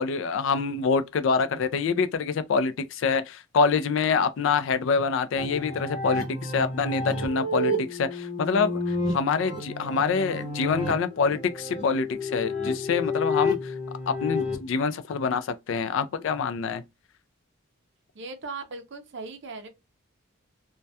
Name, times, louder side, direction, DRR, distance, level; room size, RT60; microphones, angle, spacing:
voice 1, 0.0-13.7 14.1-16.8, left 5 dB, 60° left, 0.3 m, -26 dB
sound 1, 5.4-14.5, left 2 dB, 30° left, 0.8 m, -30 dB
voice 2, 18.1-19.7, right 3 dB, 55° right, 0.5 m, -38 dB
2.2 x 2.1 x 2.6 m
head